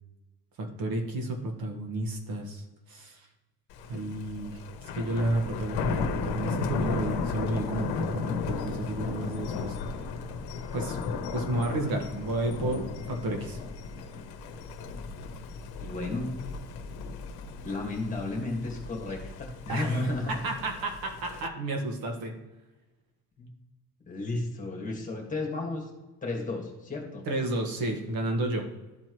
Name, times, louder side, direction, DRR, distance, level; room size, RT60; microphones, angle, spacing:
voice 1, 0.6-3.2 3.9-4.6 4.9-9.8 10.7-11.0 11.3-13.6 19.7-20.0 20.4-22.3 27.3-28.7, right 1 dB, 60° right, 3 dB, 1.5 m, -31 dB
Thunder, 3.7-21.5, left 5 dB, 75° left, 0.9 m, -35 dB
voice 2, 15.8-16.3 17.6-20.5 23.4-23.5 24.1-25.9 26.2-27.2, left 2 dB, 20° left, -1 dB, 1.7 m, -33 dB
13.0 x 4.4 x 3.1 m, 1.1 s
cardioid pair, 150°, 40 cm